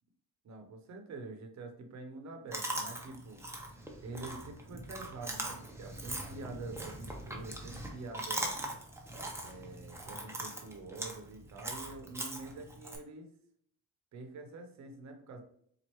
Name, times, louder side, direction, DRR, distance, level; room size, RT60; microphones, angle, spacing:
voice 1, 0.4-3.4 4.0-8.6 9.4-13.3 14.1-15.4, right 3 dB, 55° right, 4 dB, 0.9 m, -46 dB
Chewing mastication, 2.5-13.0, right 1 dB, 10° right, 0.8 m, -41 dB
4.2 x 2.7 x 3.0 m, 0.65 s
cardioid pair, 95°, 34 cm